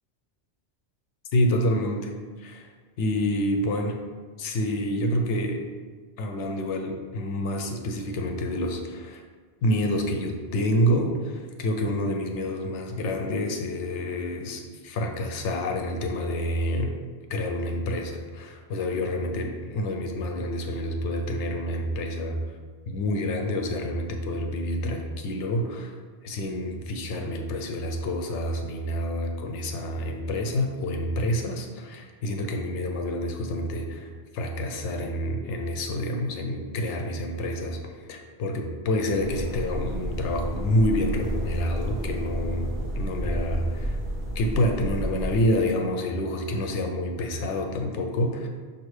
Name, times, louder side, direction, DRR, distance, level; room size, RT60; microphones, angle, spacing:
voice 1, 1.3-2.1 2.4-2.7 3.0-4.0 4.4-5.6 6.2-9.2 9.6-17.0 17.3-22.4 22.9-26.0 26.2-34.1 34.3-44.0 44.4-48.5, left 1 dB, 80° left, 4 dB, 0.9 m, -28 dB
sound 1, 39.2-45.4, right 1 dB, 35° right, 0.6 m, -31 dB
5.3 x 2.6 x 3.2 m, 1.5 s
omnidirectional pair, 1.2 m